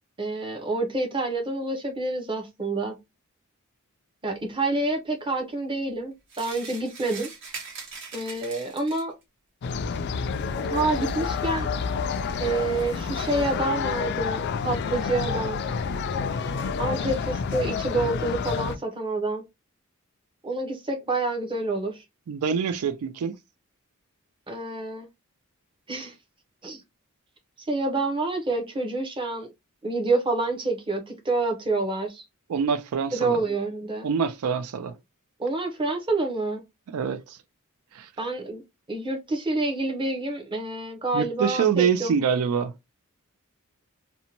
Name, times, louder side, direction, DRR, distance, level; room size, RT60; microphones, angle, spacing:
voice 1, 0.2-3.0 4.2-7.3 8.1-9.1 10.7-11.7 12.4-15.6 16.8-19.4 20.4-22.0 24.5-25.1 25.9-26.1 26.6-26.8 27.7-29.5 29.8-32.2 33.1-34.1 35.4-36.6 38.2-38.6 38.9-42.1, right 2 dB, 25° right, 0.6 m, -28 dB
sound 1, 6.3-9.2, right 4 dB, 60° right, 1.1 m, -41 dB
sound 2, 9.6-18.8, left 5 dB, 50° left, 0.3 m, -29 dB
voice 2, 22.3-23.4 32.5-33.4 34.0-34.9 36.9-37.4 37.9-38.1 41.1-42.7, right 6 dB, 85° right, 0.4 m, -25 dB
2.6 x 2.1 x 2.8 m
head